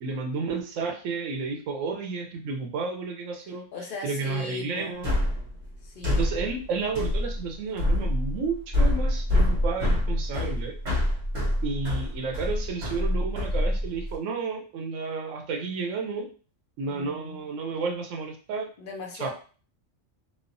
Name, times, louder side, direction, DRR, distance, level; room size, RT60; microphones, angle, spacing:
voice 1, 0.0-3.7 4.0-5.2 6.0-10.8 11.6-16.3 16.8-18.7 19.1-19.3, right 4 dB, 75° right, 3 dB, 1.0 m, -31 dB
voice 2, 3.7-5.0 5.8-6.5 16.8-17.5 18.8-19.3, left 3 dB, 60° left, 2 dB, 0.6 m, -38 dB
sound 1, 5.0-14.2, left 1 dB, 60° right, 1.2 m, -26 dB
3.1 x 2.0 x 2.5 m, 0.39 s
omnidirectional pair, 1.3 m